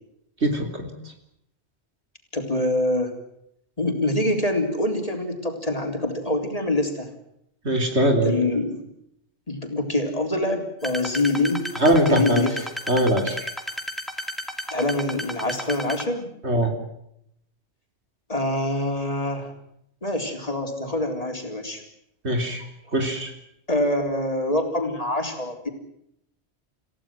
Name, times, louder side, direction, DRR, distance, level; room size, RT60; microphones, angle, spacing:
voice 1, 0.4-0.9 7.6-8.4 11.8-12.5 12.9-13.5 16.4-16.7 22.2-22.6 22.9-23.3, right 1 dB, 80° right, 5 dB, 3.9 m, -21 dB
voice 2, 2.3-3.2 3.8-7.1 8.2-8.8 9.5-11.7 12.1-12.6 14.7-16.3 18.3-19.5 20.0-21.8 23.7-25.7, left 1 dB, 35° left, 4 dB, 4.0 m, -25 dB
sound 1, 10.8-16.0, equal, ahead, 2.4 m, -33 dB
28.5 x 16.5 x 7.6 m, 0.76 s
omnidirectional pair, 1.1 m